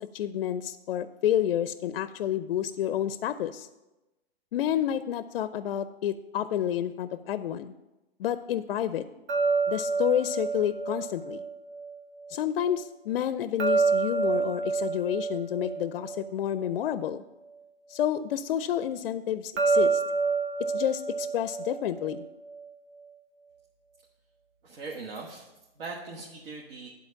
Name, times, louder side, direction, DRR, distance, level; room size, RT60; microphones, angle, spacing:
voice 1, 0.0-3.7 4.5-7.7 8.2-9.0 9.7-11.4 12.3-17.2 17.9-20.0 20.6-22.2, left 10 dB, 65° left, 13 dB, 0.5 m, -29 dB
sound 1, 9.3-12.4 13.6-17.1 19.6-22.7, right 4 dB, 30° right, 0.6 m, -28 dB
voice 2, 24.6-25.5 25.7-26.9, right 3 dB, 65° right, -1 dB, 1.4 m, -40 dB
10.5 x 4.1 x 5.7 m, 1.0 s
hypercardioid pair, 160°, 30 cm